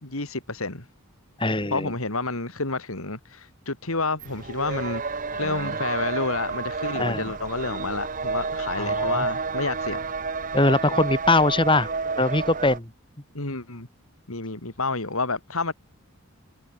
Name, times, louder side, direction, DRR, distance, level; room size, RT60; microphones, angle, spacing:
voice 1, 0.0-0.8 1.7-10.0 13.3-13.9 14.3-15.7, left 3 dB, 75° left, 3.3 m, -29 dB
voice 2, 1.4-1.9 5.3-5.8 7.0-7.3 8.8-9.2 10.5-11.9 12.2-12.9, left 2 dB, 20° left, 2.4 m, -22 dB
sound 1, 4.2-12.8, right 4 dB, 35° right, 1.0 m, -30 dB
head